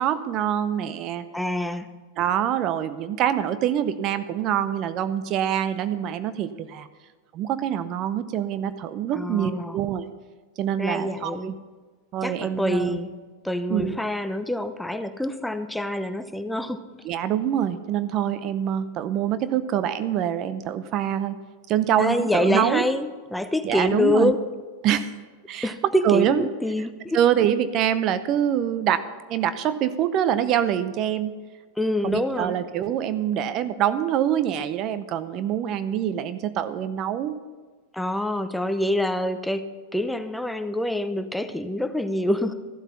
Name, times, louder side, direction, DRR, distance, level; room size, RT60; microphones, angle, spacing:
voice 1, 0.0-1.2 2.2-6.9 7.3-10.1 10.6-11.5 12.1-13.0 13.7-14.0 17.0-21.4 21.7-22.9 23.6-24.3 24.8-25.1 25.5-26.4 27.1-31.3 32.0-37.4, right 10 dB, 45° right, 13 dB, 0.7 m, -25 dB
voice 2, 1.3-1.9 9.1-9.8 10.8-11.5 12.2-13.1 13.4-16.8 22.0-24.4 25.6-27.2 31.8-32.6 37.9-39.7 39.9-42.5, left 1 dB, 5° left, 10 dB, 0.7 m, -26 dB
14.0 x 8.1 x 5.7 m, 1.4 s
hypercardioid pair, 100°, 0 cm